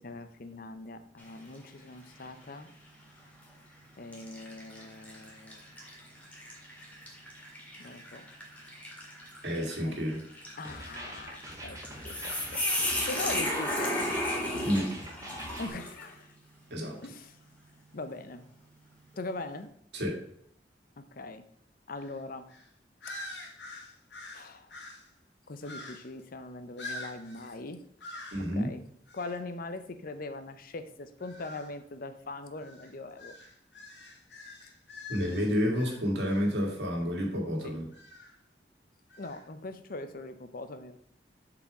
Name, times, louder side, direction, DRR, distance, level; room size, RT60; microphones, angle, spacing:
voice 1, 0.0-2.7 4.0-5.6 7.8-8.3 9.8-10.0 10.6-12.7 13.1-14.1 15.6-16.3 17.0-17.4 17.9-18.5 19.2-19.7 21.0-21.5 21.9-22.5 23.1-23.2 24.3-24.7 25.5-27.8 28.5-28.8 29.1-33.3 37.6-37.8 39.2-41.0, left 2 dB, 55° left, 10 dB, 0.7 m, -41 dB
sound 1, 1.2-1.7 2.2-2.3 3.3-3.5 4.1-16.1, left 1 dB, 10° left, 1.9 m, -35 dB
voice 2, 9.4-10.2 14.6-14.9 16.7-17.0 19.9-20.2 28.3-28.8 35.1-37.9, equal, 70° right, 1 dB, 1.9 m, -30 dB
sound 2, 10.6-15.7, right 1 dB, 20° right, 1.2 m, -44 dB
sound 3, 22.0-22.2 22.5-22.7 23.0-25.1 25.6-26.2 26.8-27.6 28.0-28.5 29.1-29.4 31.2-31.7 32.5-36.5 37.9-38.4 39.1-39.4, left 2 dB, 85° left, 1.9 m, -45 dB
6.9 x 4.9 x 4.8 m, 0.68 s
head